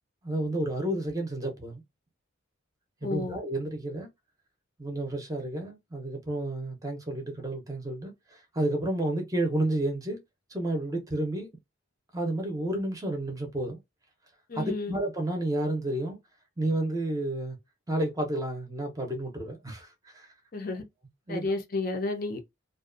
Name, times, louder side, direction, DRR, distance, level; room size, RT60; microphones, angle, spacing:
voice 1, 0.2-1.8 3.0-4.1 4.8-10.2 10.5-11.5 12.1-13.8 14.6-16.2 16.6-17.6 17.9-20.3 21.3-21.5, right 1 dB, 15° right, 0.6 m, -31 dB
voice 2, 3.0-3.4 14.5-15.0 20.5-20.8 21.3-22.5, left 3 dB, 45° left, 0.5 m, -31 dB
2.5 x 2.2 x 2.4 m
head